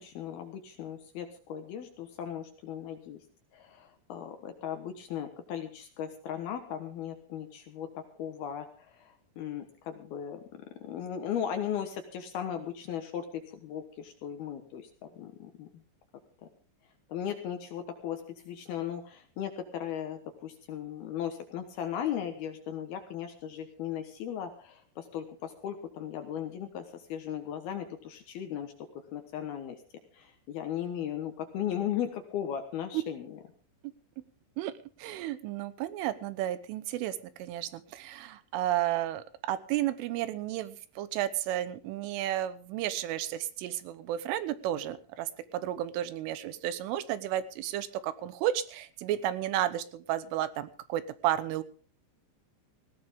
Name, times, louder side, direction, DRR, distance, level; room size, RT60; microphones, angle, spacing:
voice 1, 0.0-3.2 3.5-15.7 17.1-28.7 29.1-29.8 30.1-33.4, left 9 dB, 65° left, 7 dB, 2.7 m, -37 dB
voice 2, 35.0-51.6, right 12 dB, 80° right, 14 dB, 3.4 m, -32 dB
18.5 x 16.5 x 3.7 m, 0.37 s
omnidirectional pair, 5.7 m